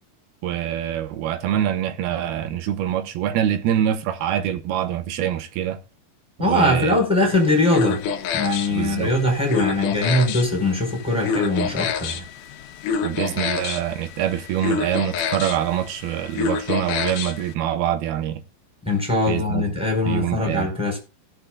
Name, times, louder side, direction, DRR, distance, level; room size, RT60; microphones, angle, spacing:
voice 1, 0.4-5.8 6.5-7.0 8.7-9.1 13.0-18.4 19.3-19.7 20.1-20.7, right 10 dB, 80° right, 2.9 m, -25 dB
voice 2, 6.4-8.0 8.3-12.2 18.8-21.0, left 2 dB, ahead, 4.2 m, -21 dB
sound 1, 7.3-17.5, left 6 dB, 65° left, 2.4 m, -28 dB
18.5 x 6.8 x 2.3 m
omnidirectional pair, 4.4 m